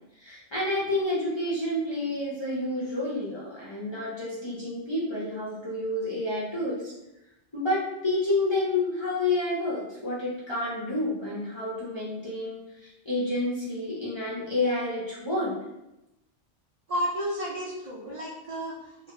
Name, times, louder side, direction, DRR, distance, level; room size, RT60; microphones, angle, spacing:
voice 1, 0.2-6.9 7.5-15.5, left 2 dB, 35° left, -7 dB, 0.4 m, -29 dB
voice 2, 16.9-19.1, equal, 70° right, -5 dB, 0.3 m, -32 dB
2.2 x 2.1 x 2.8 m, 0.90 s
omnidirectional pair, 1.2 m